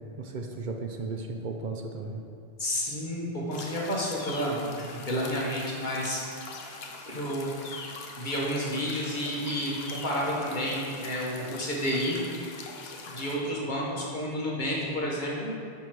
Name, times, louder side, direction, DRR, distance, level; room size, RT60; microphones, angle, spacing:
voice 1, 0.2-2.2, right 3 dB, 55° right, 3 dB, 0.7 m, -35 dB
voice 2, 2.6-6.3 7.1-7.5 8.2-12.2 13.0-15.5, equal, 45° left, -5 dB, 1.5 m, -30 dB
sound 1, 3.5-13.4, left 4 dB, 70° left, 0.9 m, -43 dB
10.5 x 3.5 x 4.7 m, 2.7 s
omnidirectional pair, 1.1 m